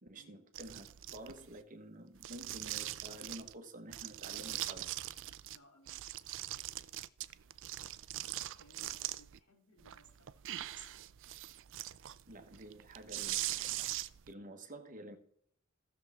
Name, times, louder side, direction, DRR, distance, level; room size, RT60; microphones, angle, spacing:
voice 1, 0.0-4.9 10.8-10.9 12.3-13.9 14.3-15.2, right 1 dB, 40° right, 6 dB, 1.3 m, -50 dB
sound 1, 0.5-1.6 2.2-3.5 3.9-5.6 5.9-9.4 9.8-14.3, right 14 dB, 60° right, 0.4 m, -42 dB
voice 2, 5.4-6.0 6.3-6.7 8.6-10.4, equal, 70° left, 0 dB, 3.3 m, -65 dB
15.5 x 6.9 x 3.6 m, 0.70 s
head